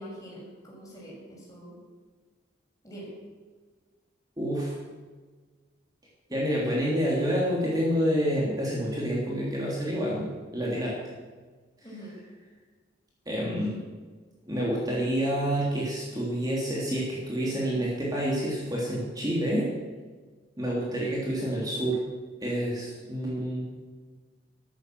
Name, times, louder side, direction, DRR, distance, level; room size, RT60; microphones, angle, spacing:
voice 1, 0.0-1.8 2.8-3.1 11.8-12.1 13.6-13.8, equal, 20° left, -4 dB, 6.6 m, -44 dB
voice 2, 4.4-4.7 6.3-10.9 13.3-13.7 14.5-19.7 20.6-22.0 22.4-23.7, equal, 20° right, -4 dB, 3.1 m, -28 dB
13.0 x 12.5 x 7.9 m, 1.4 s
head